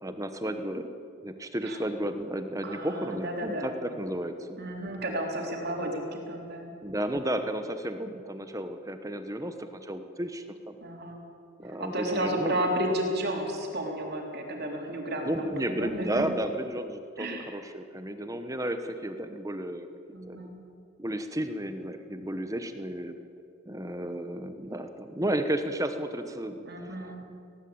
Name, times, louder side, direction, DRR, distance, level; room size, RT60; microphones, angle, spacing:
voice 1, 0.0-0.9 1.2-4.6 6.8-10.8 11.6-12.6 15.2-19.9 20.3-20.4 21.0-23.1 23.7-27.0, right 1 dB, 15° right, 8 dB, 1.0 m, -33 dB
voice 2, 2.6-3.7 4.6-6.7 10.8-11.2 11.8-16.2 17.2-17.5 20.1-20.6 26.6-27.2, right 1 dB, 45° right, 1 dB, 3.6 m, -32 dB
19.5 x 17.0 x 8.7 m, 2.5 s
head